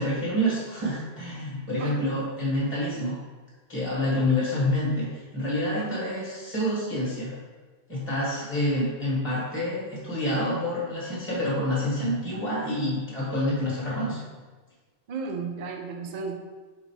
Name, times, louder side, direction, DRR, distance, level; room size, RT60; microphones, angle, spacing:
voice 1, 0.0-3.2 3.7-7.3 7.9-14.2, left 1 dB, 10° left, -7 dB, 1.2 m, -27 dB
voice 2, 5.7-6.1 15.1-16.3, right 4 dB, 55° right, 2 dB, 0.5 m, -34 dB
3.8 x 2.9 x 4.6 m, 1.4 s
omnidirectional pair, 1.2 m